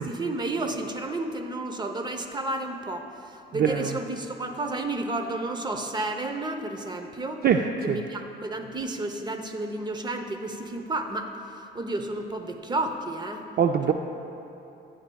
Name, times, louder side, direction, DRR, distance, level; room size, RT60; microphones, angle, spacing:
voice 1, 0.0-7.4 7.8-11.3 11.7-13.4 13.9-14.0, right 2 dB, 20° right, 6 dB, 0.8 m, -31 dB
voice 2, 3.5-4.0 7.4-8.0 13.6-13.9, right 7 dB, 50° right, 5 dB, 0.4 m, -23 dB
14.0 x 9.7 x 2.3 m, 2.9 s
cardioid pair, 90°, 20 cm